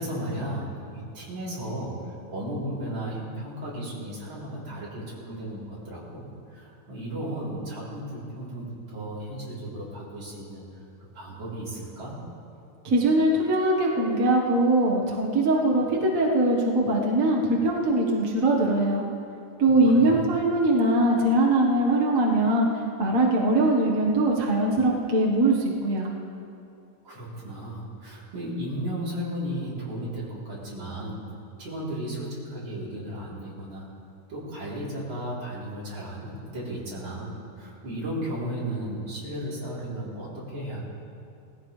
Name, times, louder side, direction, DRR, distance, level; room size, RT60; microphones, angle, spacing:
voice 1, 0.0-6.3 6.5-10.6 11.1-12.2 19.6-20.2 27.0-31.2 31.6-33.9 34.3-40.8, right 1 dB, 35° right, -7 dB, 4.0 m, -34 dB
voice 2, 12.8-19.0 19.6-22.7 23.0-25.5 25.8-26.1, right 1 dB, 55° right, -2 dB, 0.9 m, -22 dB
19.5 x 15.5 x 3.3 m, 2.6 s
omnidirectional pair, 3.8 m